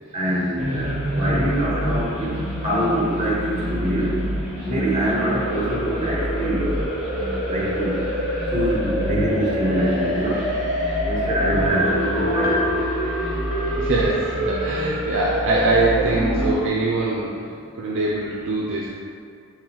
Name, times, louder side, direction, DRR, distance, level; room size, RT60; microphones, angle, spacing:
voice 1, 0.1-2.3 2.6-4.1 4.6-6.7 7.2-7.9 8.5-10.4 11.0-12.7, equal, 30° right, -6 dB, 1.2 m, -24 dB
sound 1, 0.6-16.6, equal, 5° right, 0.9 m, -26 dB
Piano, 12.0-14.7 15.1-15.2, left 1 dB, 45° left, 0.5 m, -27 dB
voice 2, 13.7-17.4 17.7-18.9, right 2 dB, 60° right, -4 dB, 0.5 m, -23 dB
4.5 x 3.9 x 2.9 m, 2.4 s
head